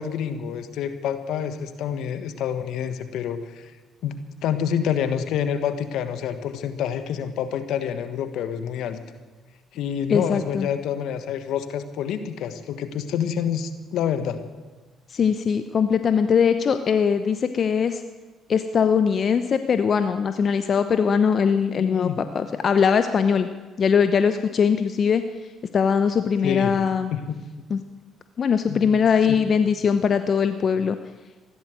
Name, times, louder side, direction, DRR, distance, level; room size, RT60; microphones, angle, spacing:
voice 1, 0.0-3.7 4.0-9.0 9.7-14.4 21.8-22.2 26.4-26.8 27.1-27.7 28.7-28.9, left 8 dB, 75° left, 10 dB, 1.3 m, -28 dB
voice 2, 10.1-10.7 15.1-18.0 18.5-23.5 23.8-25.2 25.7-27.1 27.7-27.8 28.4-31.0, left 6 dB, 50° left, 9 dB, 0.8 m, -21 dB
15.5 x 12.0 x 7.8 m, 1.3 s
supercardioid pair, 60°, 0 cm